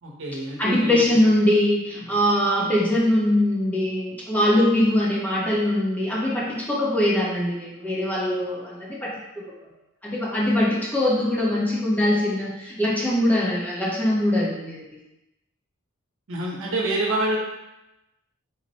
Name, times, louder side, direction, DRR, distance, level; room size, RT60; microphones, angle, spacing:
voice 1, 0.0-1.2 16.3-17.4, right 1 dB, 65° right, -3 dB, 0.9 m, -27 dB
voice 2, 0.6-9.4 10.0-14.8, left 1 dB, 10° left, -6 dB, 0.8 m, -22 dB
4.1 x 2.1 x 4.2 m, 0.95 s
head